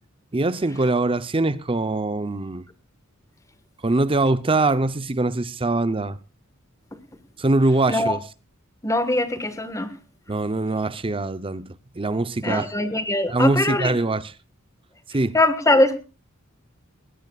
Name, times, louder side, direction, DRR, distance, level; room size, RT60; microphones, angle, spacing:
voice 1, 0.3-2.7 3.8-6.2 7.4-8.2 10.3-12.7 13.3-14.3 15.1-15.4, right 2 dB, 25° right, 0.7 m, -23 dB
voice 2, 8.8-9.9 12.4-13.9 15.3-16.0, left 1 dB, 15° left, 1.5 m, -21 dB
21.0 x 17.5 x 2.4 m
head